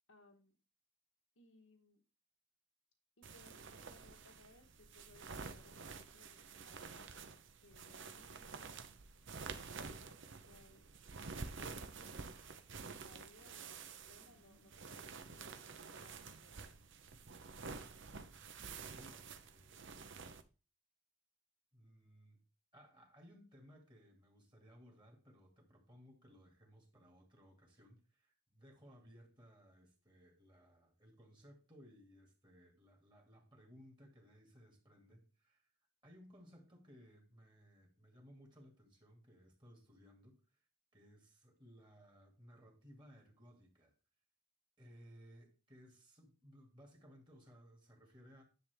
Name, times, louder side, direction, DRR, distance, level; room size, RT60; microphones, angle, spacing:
voice 1, 0.1-0.6 1.4-2.0 3.2-7.3 7.6-8.9 9.9-10.9 11.3-12.4 12.7-16.7, left 2 dB, 75° left, 1.4 m, -65 dB
sound 1, 3.2-20.4, right 4 dB, 55° right, 0.8 m, -50 dB
voice 2, 18.8-20.2 21.7-22.4 22.7-35.7 36.0-40.6 40.9-43.9 44.8-48.4, equal, 20° right, 2.4 m, -61 dB
10.5 x 7.2 x 3.5 m
head